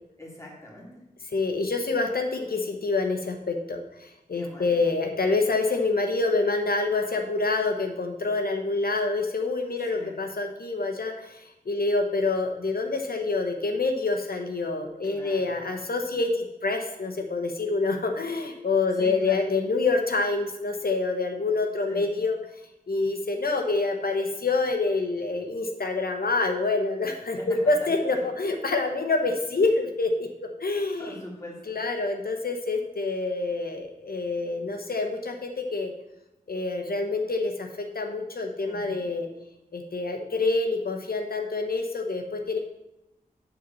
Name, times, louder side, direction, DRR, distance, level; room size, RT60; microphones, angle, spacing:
voice 1, 0.2-1.0 4.3-4.8 9.8-10.2 15.0-15.6 18.9-19.4 21.9-22.2 27.4-28.2 31.0-31.8 38.6-39.1, left 1 dB, 20° left, -4 dB, 3.1 m, -42 dB
voice 2, 1.3-22.4 22.9-30.3 30.6-31.1 31.7-35.9 36.5-39.3 39.7-42.6, left 3 dB, 70° left, 4 dB, 1.0 m, -27 dB
8.4 x 4.0 x 7.0 m, 0.91 s
wide cardioid pair, 55°, 16 cm